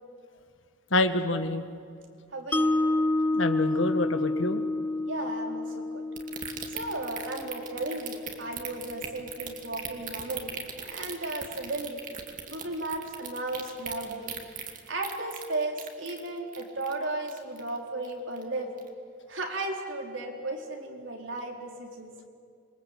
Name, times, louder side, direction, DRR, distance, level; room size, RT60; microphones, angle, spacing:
voice 1, 0.9-1.7 3.3-4.6, left 2 dB, 75° left, 8 dB, 1.7 m, -27 dB
voice 2, 2.3-2.8 5.1-6.0 6.7-12.0 12.5-14.4 14.9-18.7 19.3-22.1, right 2 dB, 70° right, 1 dB, 4.2 m, -35 dB
Mallet percussion, 2.5-8.7, left 2 dB, 10° left, 0.6 m, -29 dB
sound 1, 6.2-17.8 18.0-18.4 18.8-18.9, right 7 dB, 40° right, 2.7 m, -39 dB
27.0 x 23.5 x 8.5 m, 2.3 s
head